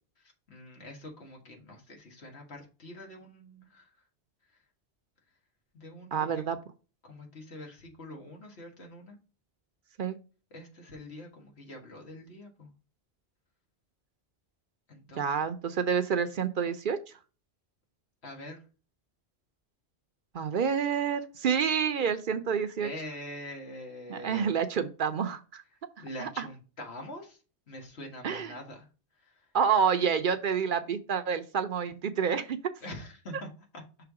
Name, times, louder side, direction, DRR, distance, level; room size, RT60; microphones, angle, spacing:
voice 1, 0.2-3.9 5.7-6.4 7.0-9.2 10.5-12.7 14.9-15.4 18.2-18.6 22.8-24.5 26.0-27.4 27.7-28.9 29.2-29.5 32.8-33.5, left 1 dB, 85° left, 1 dB, 1.9 m, -44 dB
voice 2, 6.1-6.6 10.0-10.2 15.2-17.0 20.3-22.9 24.1-25.6 26.0-26.5 28.2-28.6 29.5-32.6, right 7 dB, 60° right, 10 dB, 0.7 m, -28 dB
5.9 x 3.4 x 4.7 m, 0.34 s
omnidirectional pair, 1.1 m